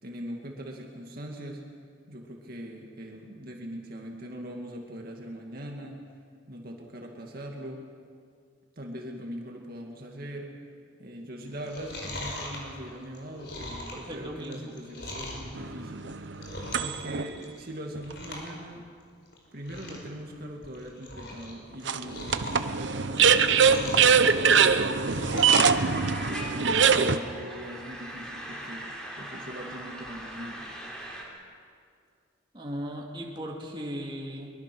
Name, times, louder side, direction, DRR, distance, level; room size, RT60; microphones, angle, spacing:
voice 1, 0.0-1.7 2.1-6.0 6.5-7.9 8.8-10.5 11.0-16.5 16.8-18.8 19.5-22.3 22.6-25.5 26.2-28.8 29.2-30.7, equal, 50° right, 0 dB, 2.2 m, -41 dB
Chewing mastication, 11.5-15.5 16.0-17.0 17.3-17.7 18.0-18.5 18.8-18.9 19.3-19.4 19.6-20.1 20.5-21.5 21.8-24.2 24.6-25.7 26.0-27.0 27.4-27.5, left 1 dB, 55° left, 5.0 m, -40 dB
voice 2, 13.9-14.6 32.5-34.5, equal, 25° right, -1 dB, 2.5 m, -37 dB
sound 1, 15.6-17.3 17.9-18.0 21.8-27.2, right 6 dB, 65° right, 0.9 m, -22 dB
sound 2, 25.7-31.2, right 1 dB, 5° left, 3.5 m, -40 dB
23.5 x 22.5 x 6.3 m, 2.2 s
head